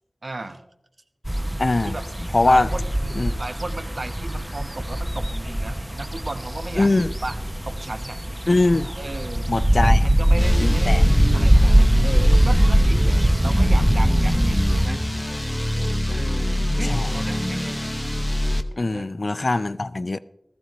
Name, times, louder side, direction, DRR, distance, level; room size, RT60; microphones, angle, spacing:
voice 1, 0.2-0.6 1.8-2.0 2.4-2.9 3.4-7.4 7.6-8.2 9.0-9.5 9.8-15.1 16.1-17.8 18.9-19.1, right 2 dB, 75° right, 0.9 m, -35 dB
sound 1, 1.2-14.9, right 1 dB, 15° right, 0.7 m, -21 dB
voice 2, 1.6-2.0 2.3-2.7 3.1-3.4 6.8-7.1 8.5-8.9 9.5-10.1 10.6-11.0 16.8-17.1 18.8-20.2, left 2 dB, 60° left, 0.4 m, -21 dB
sound 2, 10.4-18.6, left 1 dB, 15° left, 0.8 m, -24 dB
15.5 x 13.5 x 3.1 m
wide cardioid pair, 40°, 0 cm